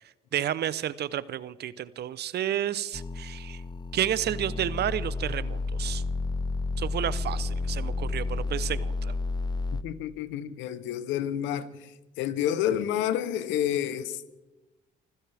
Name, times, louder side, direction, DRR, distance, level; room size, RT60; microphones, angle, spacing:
voice 1, 0.3-3.6 3.9-6.0 6.8-9.1, right 11 dB, 60° right, 0.7 m, -31 dB
sound 1, 2.9-9.8, left 3 dB, 20° left, 0.7 m, -31 dB
voice 2, 9.7-14.4, left 10 dB, 85° left, 0.9 m, -30 dB
25.5 x 15.5 x 3.5 m
supercardioid pair, 65°, 19 cm